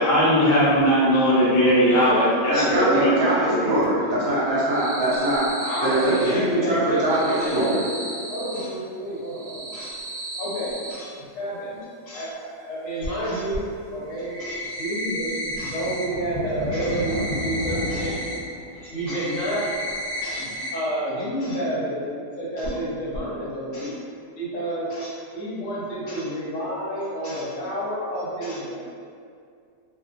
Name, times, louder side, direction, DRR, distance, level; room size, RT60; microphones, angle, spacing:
voice 1, 0.0-3.1 3.5-3.6, equal, 75° left, -10 dB, 0.5 m, -18 dB
voice 2, 2.5-5.5 5.8-7.8, right 1 dB, 55° right, -9 dB, 0.9 m, -22 dB
sound 1, 4.5-6.3 6.9-8.6 9.2-10.9 13.0-13.1 13.5-13.6 14.0-16.0 16.3-18.4 18.7-20.7 21.0-21.1 21.5-21.6 22.6-22.8 23.1-23.2, equal, 90° right, 0.6 m, -34 dB
voice 3, 5.6-7.9 8.3-9.9 10.4-11.8 12.1-12.3 12.6-18.3 18.7-19.6 20.2-23.9 24.4-28.7, right 1 dB, 60° left, -8 dB, 1.1 m, -29 dB
sound 2, 13.7-14.5 15.5-20.4, equal, 5° left, 0.4 m, -34 dB
2.6 x 2.4 x 2.4 m, 2.3 s
omnidirectional pair, 1.8 m